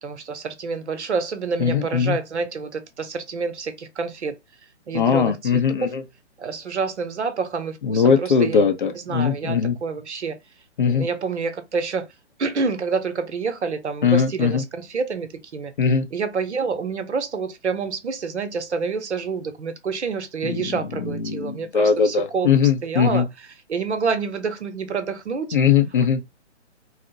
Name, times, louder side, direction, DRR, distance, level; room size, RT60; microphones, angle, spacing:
voice 1, 0.0-4.4 4.9-5.9 6.4-10.4 10.8-12.1 12.4-15.7 16.1-22.5 22.8-25.6, right 5 dB, 70° right, 0.7 m, -28 dB
voice 2, 1.6-2.2 4.9-6.0 7.9-9.8 10.8-11.1 14.0-14.6 15.8-16.0 20.4-20.7 21.0-23.2 25.5-26.2, left 6 dB, 45° left, 0.5 m, -20 dB
2.7 x 2.0 x 2.6 m
figure-of-eight pair, 135°, 35 cm